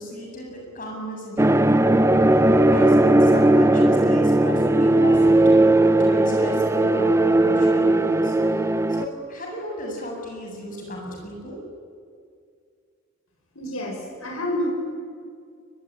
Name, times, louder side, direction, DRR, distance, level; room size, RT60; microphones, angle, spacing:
voice 1, 0.0-1.9 2.6-5.5 6.0-8.6 8.9-11.6, equal, 40° left, 0 dB, 7.9 m, -34 dB
sound 1, 1.4-9.1, right 1 dB, 15° right, 0.6 m, -17 dB
voice 2, 13.5-14.7, left 1 dB, 90° left, 1 dB, 6.9 m, -28 dB
23.0 x 22.0 x 9.9 m, 2.2 s
head